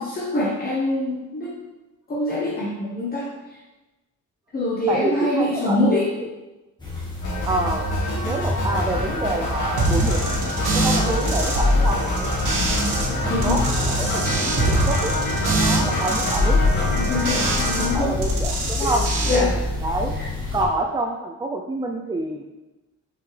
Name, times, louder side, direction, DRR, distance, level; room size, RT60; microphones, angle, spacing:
voice 1, 0.0-1.5 2.1-3.3 4.5-6.1 11.0-11.3 12.8-13.6 16.9-18.1 18.8-18.9 19.2-19.6 20.2-20.3, left 2 dB, 30° left, -5 dB, 1.0 m, -24 dB
voice 2, 4.9-5.8 7.4-7.9 8.2-10.3 10.7-12.4 13.2-16.6 17.8-19.1 19.3-20.1 20.5-22.4, right 2 dB, 15° right, 2 dB, 0.4 m, -27 dB
sound 1, 6.8-20.6, left 2 dB, 15° left, 1.6 m, -29 dB
sound 2, 7.2-17.9, left 1 dB, 80° left, 2.2 m, -26 dB
sound 3, 9.8-13.1 13.3-17.9 18.1-19.4, right 1 dB, 85° right, 1.7 m, -23 dB
6.3 x 5.8 x 3.3 m, 1.1 s
cardioid pair, 145°, 31 cm